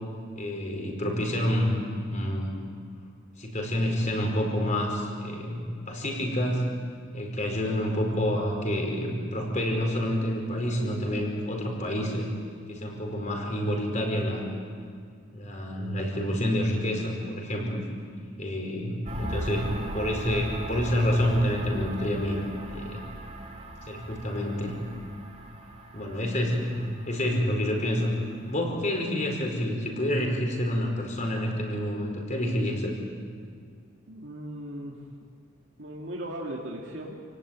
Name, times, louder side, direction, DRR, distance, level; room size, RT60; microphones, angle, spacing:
voice 1, 0.3-2.5 3.4-6.7 7.1-12.3 12.7-14.5 15.3-17.8 18.4-22.4 22.7-23.0 23.9-24.8 25.9-28.2 28.5-32.9, equal, 35° left, 1 dB, 5.0 m, -28 dB
sound 1, 19.1-28.6, right 1 dB, 35° right, 2.5 m, -38 dB
voice 2, 34.1-35.3 35.8-37.2, right 1 dB, 60° right, -2 dB, 2.7 m, -38 dB
28.5 x 18.0 x 9.1 m, 2.1 s
head